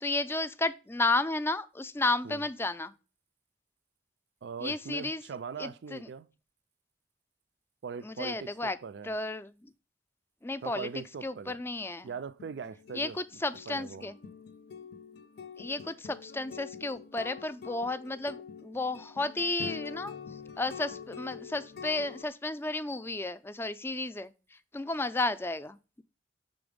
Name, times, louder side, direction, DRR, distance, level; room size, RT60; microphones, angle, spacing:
voice 1, 0.0-2.9 4.6-5.2 5.6-6.1 8.0-8.8 9.0-9.7 10.4-10.9 11.2-12.1 12.9-14.2 15.6-20.1 20.6-24.3 24.7-26.0, left 2 dB, 15° left, 0.4 m, -33 dB
voice 2, 4.4-6.3 7.8-9.1 10.6-11.6 12.0-13.2 13.7-14.1, right 6 dB, 75° right, 0.4 m, -41 dB
sound 1, 12.4-22.2, left 6 dB, 60° left, 0.6 m, -45 dB
6.1 x 3.9 x 4.9 m
head